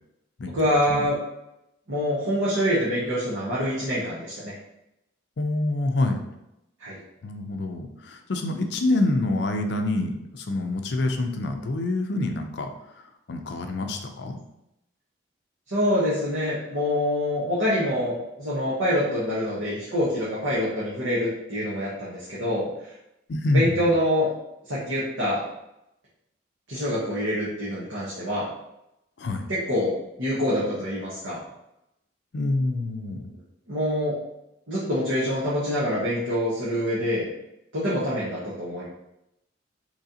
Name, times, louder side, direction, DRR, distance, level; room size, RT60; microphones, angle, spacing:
voice 1, 0.5-1.2 1.9-4.5 6.8-7.0 15.7-22.7 23.5-24.3 24.7-25.4 26.7-28.5 29.5-31.4 33.7-34.1 34.7-37.3 37.7-38.9, equal, 80° right, -9 dB, 1.0 m, -25 dB
voice 2, 5.4-6.2 7.2-12.7 13.3-14.4 23.3-23.8 29.2-29.5 32.3-33.2, left 2 dB, 60° left, 5 dB, 0.4 m, -26 dB
3.8 x 3.1 x 2.7 m, 0.86 s
head